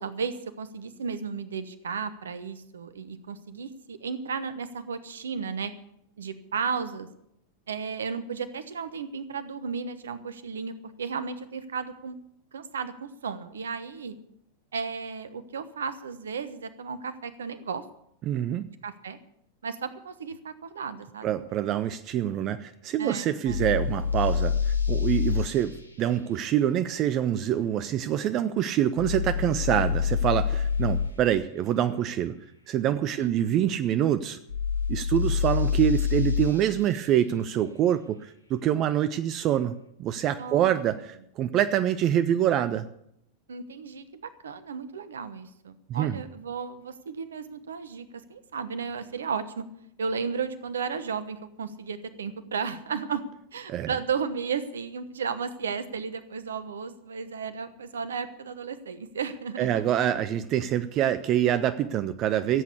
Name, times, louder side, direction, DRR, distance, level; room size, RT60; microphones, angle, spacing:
voice 1, 0.0-5.7 6.2-7.1 7.7-12.1 12.5-14.2 14.7-17.8 18.8-19.2 19.6-21.3 23.0-23.7 33.2-33.6 40.4-40.9 43.5-49.6 50.0-53.2 53.5-59.9, right 5 dB, 65° right, 13 dB, 1.1 m, -34 dB
voice 2, 18.3-18.7 21.2-32.4 32.7-34.4 34.9-42.9 45.9-46.2 53.7-53.9 59.6-62.6, right 11 dB, 35° right, 13 dB, 0.6 m, -26 dB
sound 1, 23.5-25.5 29.0-31.1 34.5-36.6, left 7 dB, 85° left, 1.4 m, -26 dB
15.5 x 8.3 x 8.3 m, 0.76 s
figure-of-eight pair, 90°, 0 cm